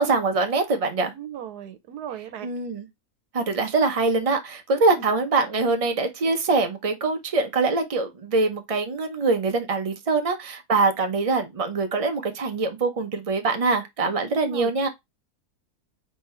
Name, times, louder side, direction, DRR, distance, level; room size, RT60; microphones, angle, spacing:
voice 1, 0.0-1.1 2.4-2.9 3.3-14.9, right 3 dB, 45° right, 0.4 m, -23 dB
voice 2, 1.0-2.5 4.9-5.0 14.3-14.7, right 10 dB, 85° right, 1.3 m, -37 dB
4.2 x 3.5 x 3.1 m
omnidirectional pair, 1.7 m